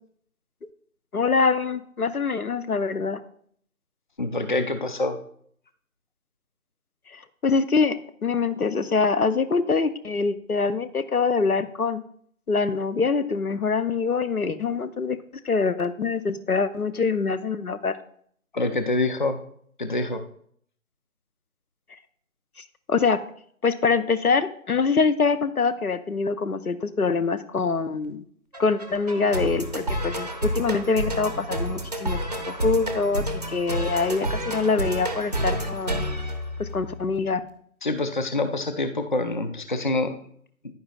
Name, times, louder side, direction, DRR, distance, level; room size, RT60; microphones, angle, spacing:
voice 1, 1.1-3.2 7.1-12.0 12.5-15.2 15.4-18.0 22.9-23.2 23.6-28.2 28.6-32.2 32.5-36.0 36.6-37.4, left 4 dB, 90° left, 13 dB, 0.8 m, -24 dB
voice 2, 4.2-5.2 18.5-19.4 19.8-20.2 37.8-40.1, left 2 dB, 35° left, 9 dB, 0.5 m, -26 dB
sound 1, 28.5-37.1, right 1 dB, 30° right, 0.6 m, -29 dB
10.0 x 9.4 x 2.4 m, 0.63 s
figure-of-eight pair, 155°, 43 cm